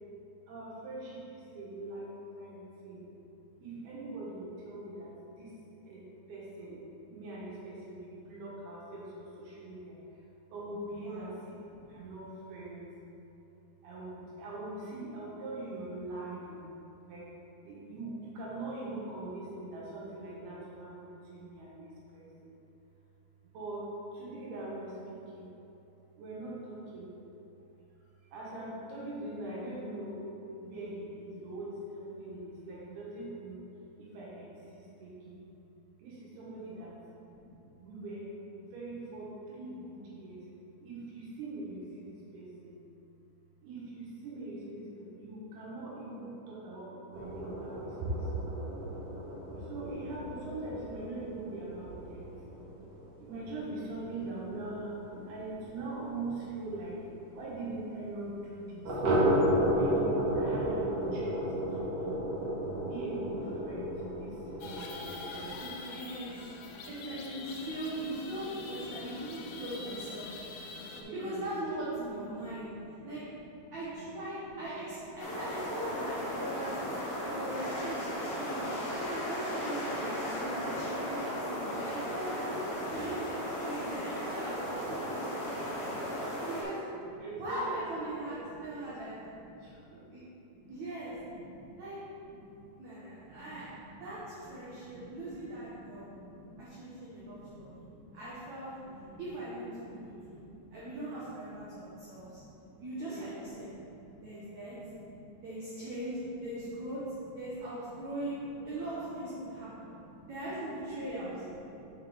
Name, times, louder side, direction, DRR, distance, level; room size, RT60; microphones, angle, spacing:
voice 1, 0.5-2.1 2.4-3.1 3.6-5.5 5.8-10.2 10.5-12.8 13.8-16.6 17.0-17.3 17.6-22.5 23.5-25.5 26.2-27.1 28.2-30.2 30.5-33.6 34.0-35.4 36.0-36.9 37.3-38.3 38.6-40.4 40.8-42.7 43.6-48.4 49.5-52.3 53.2-57.0 57.3-60.0 60.3-62.2 62.8-66.9 67.9-71.7 72.0-74.8 75.1-75.4 75.7-75.9 76.3-86.2 87.1-87.8 88.3-90.0 90.5-90.8 91.2-91.7 92.2-92.6 93.2-96.8 97.1-104.2 104.6-105.3 106.2-106.6 106.9-107.5 107.8-108.8 109.5-110.5 111.0-111.9, right 2 dB, 70° right, -6 dB, 2.8 m, -44 dB
sound 1, 47.1-56.4 56.7-56.8 57.1-57.2 57.6-57.7 58.8-65.6, equal, 55° right, 1.8 m, -33 dB
sound 2, 64.6-71.0, left 4 dB, 85° left, 2.7 m, -44 dB
voice 2, 65.6-66.5 66.8-70.3 71.1-72.7 73.0-73.2 73.7-78.6 78.9-82.6 82.9-85.7 86.5-86.8 87.4-89.1 90.1-90.2 90.7-91.2 91.8-92.0 92.8-93.7 94.0-96.1 96.6-97.9 98.1-98.7 99.2-100.4 100.7-102.4 102.8-103.7 104.1-104.8 105.4-107.0 107.3-108.4 108.6-109.9 110.3-111.4, right 1 dB, 90° right, -9 dB, 1.5 m, -40 dB
sound 3, 75.2-86.6, equal, 60° left, 2.2 m, -36 dB
6.8 x 6.6 x 3.5 m, 2.9 s
omnidirectional pair, 5.1 m